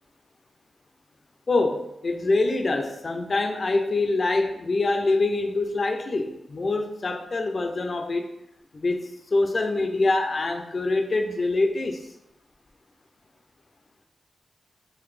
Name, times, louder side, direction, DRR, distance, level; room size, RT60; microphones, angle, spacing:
voice 1, 1.5-8.3 8.7-12.0, left 2 dB, 35° left, 5 dB, 0.3 m, -25 dB
3.9 x 2.5 x 3.2 m, 0.83 s
wide cardioid pair, 160°, 0 cm